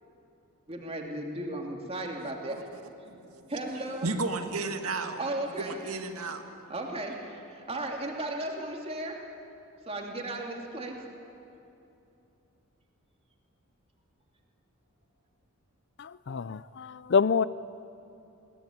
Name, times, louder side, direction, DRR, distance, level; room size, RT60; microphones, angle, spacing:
voice 1, 0.7-2.6 3.5-4.1 5.2-5.8 6.7-9.1 9.9-11.0, right 1 dB, 25° right, 1 dB, 2.6 m, -35 dB
voice 2, 2.7-3.4 4.0-5.2 5.6-6.4, right 3 dB, 80° right, 6 dB, 1.7 m, -33 dB
voice 3, 16.0-17.4, left 5 dB, 55° left, 17 dB, 0.4 m, -27 dB
21.5 x 18.5 x 9.7 m, 2.9 s
head